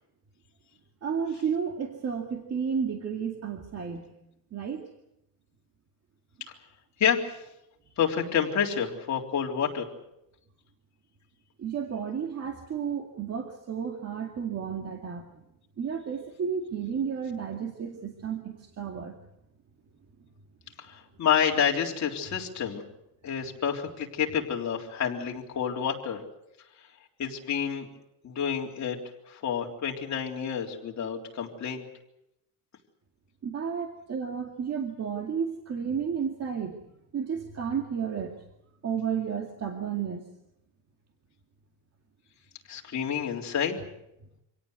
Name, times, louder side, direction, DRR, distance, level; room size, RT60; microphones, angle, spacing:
voice 1, 1.0-4.1 4.5-4.9 11.6-15.3 15.8-19.2 33.4-36.8 37.1-38.3 38.8-40.2, right 7 dB, 40° right, 4 dB, 2.2 m, -32 dB
voice 2, 7.0-7.4 8.0-9.9 20.8-22.8 23.2-26.2 27.2-27.9 28.2-29.0 29.3-31.9 42.7-43.8, left 8 dB, 45° left, 0 dB, 3.7 m, -29 dB
26.5 x 18.0 x 8.2 m, 0.84 s
cardioid pair, 160°, 38 cm